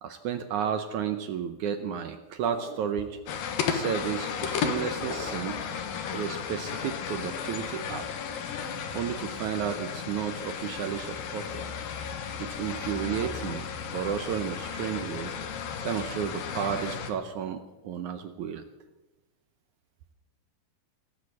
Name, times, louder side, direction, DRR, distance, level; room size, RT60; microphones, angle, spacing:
voice 1, 0.0-3.2 3.7-5.7 6.1-8.1 8.9-11.6 12.4-13.7 13.9-15.3 15.8-18.7, right 8 dB, 75° right, 8 dB, 1.9 m, -32 dB
sound 1, 2.4-3.4 5.0-5.9, left 1 dB, 15° left, 3.4 m, -44 dB
sound 2, 3.3-17.1, left 7 dB, 75° left, 3.1 m, -34 dB
17.5 x 8.3 x 9.5 m, 1.1 s
omnidirectional pair, 4.2 m